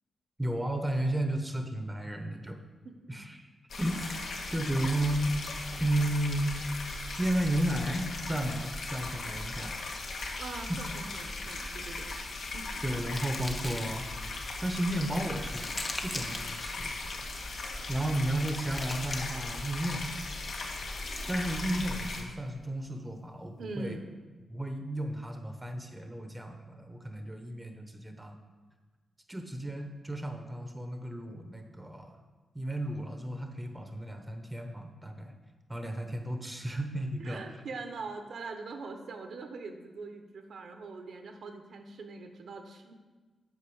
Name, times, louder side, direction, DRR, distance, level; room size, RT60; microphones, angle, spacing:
voice 1, 0.4-2.6 3.1-3.4 3.8-4.2 4.5-5.4 5.8-6.8 7.2-9.8 10.7-10.8 12.8-14.0 14.6-15.6 16.0-17.0 17.9-20.1 21.3-24.0 24.5-28.4 29.3-32.2 32.5-35.3 35.7-37.4, right 1 dB, 10° right, 5 dB, 0.8 m, -33 dB
voice 2, 2.8-3.2 10.4-12.1 12.5-12.7 23.6-24.1 37.2-42.9, right 3 dB, 65° right, 6 dB, 1.0 m, -42 dB
sound 1, 3.7-22.2, left 2 dB, 70° left, 1.5 m, -38 dB
sound 2, 12.0-14.2 14.8-16.7 17.6-19.8 20.7-22.3, left 2 dB, 25° left, 0.8 m, -43 dB
8.4 x 5.3 x 7.0 m, 1.3 s
wide cardioid pair, 140°, 0 cm